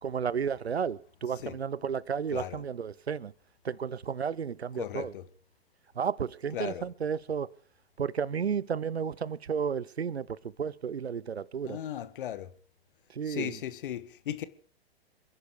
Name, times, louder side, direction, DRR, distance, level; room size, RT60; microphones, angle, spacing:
voice 1, 0.0-3.3 3.6-5.1 5.9-7.5 8.0-11.8 13.1-13.6, right 7 dB, 80° right, 0.8 m, -32 dB
voice 2, 2.3-2.6 4.8-5.3 6.5-6.8 11.6-12.5 13.2-14.4, left 11 dB, 55° left, 1.6 m, -36 dB
27.5 x 11.0 x 4.7 m
figure-of-eight pair, 110°, 31 cm